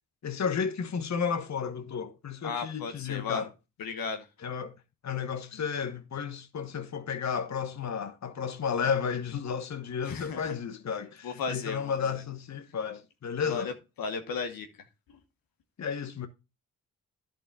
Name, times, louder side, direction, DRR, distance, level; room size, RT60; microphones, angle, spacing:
voice 1, 0.2-3.5 4.4-4.7 5.0-13.7 15.8-16.3, left 6 dB, 50° left, 1.1 m, -32 dB
voice 2, 2.4-3.4 3.8-4.3 10.0-10.5 11.2-12.2 13.5-13.7 14.0-14.7, left 5 dB, 75° left, 1.2 m, -35 dB
11.0 x 3.9 x 5.3 m
supercardioid pair, 40°, 35 cm